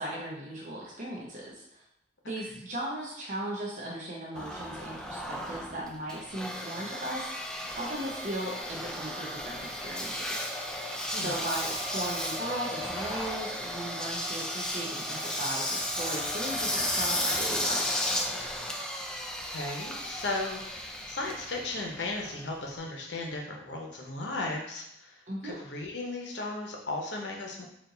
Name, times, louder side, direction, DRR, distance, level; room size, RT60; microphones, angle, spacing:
voice 1, 0.0-1.8 2.3-7.5 7.8-10.5 11.2-17.9 25.3-25.6, right 1 dB, 45° right, -4 dB, 0.7 m, -37 dB
Engine, 4.4-22.8, left 1 dB, 5° left, 0.4 m, -34 dB
voice 2, 19.5-25.2 25.4-27.6, left 2 dB, 75° left, 0 dB, 0.9 m, -36 dB
4.4 x 2.5 x 3.9 m, 0.81 s
head